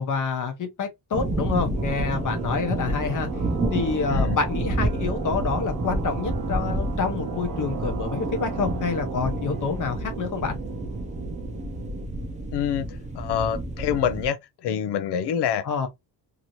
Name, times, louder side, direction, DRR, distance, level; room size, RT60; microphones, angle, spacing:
voice 1, 0.0-3.3 3.7-10.5 15.6-15.9, left 5 dB, 50° left, 0.9 m, -27 dB
sound 1, 1.1-14.3, right 1 dB, 15° right, 0.6 m, -29 dB
sound 2, 1.8-12.1, right 7 dB, 55° right, 0.9 m, -36 dB
voice 2, 12.5-15.6, left 9 dB, 75° left, 0.5 m, -26 dB
2.9 x 2.7 x 2.9 m
cardioid pair, 155°, 41 cm